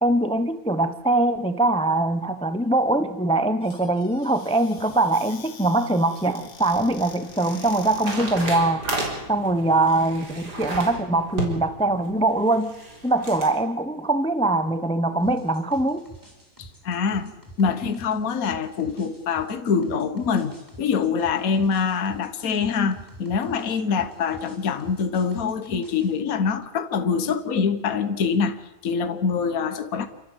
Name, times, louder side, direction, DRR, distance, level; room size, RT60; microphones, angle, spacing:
voice 1, 0.0-8.9 9.3-12.7 13.0-16.0, right 2 dB, 5° left, 0.7 m, -22 dB
Squeak / Cupboard open or close, 3.6-8.5, left 6 dB, 80° left, 2.1 m, -46 dB
sound 1, 6.2-13.5, right 2 dB, 85° right, 4.6 m, -34 dB
sound 2, 15.2-26.2, equal, 10° right, 4.5 m, -47 dB
voice 2, 16.6-17.3 17.6-30.1, left 6 dB, 60° left, 1.6 m, -25 dB
28.5 x 12.5 x 8.1 m
omnidirectional pair, 1.7 m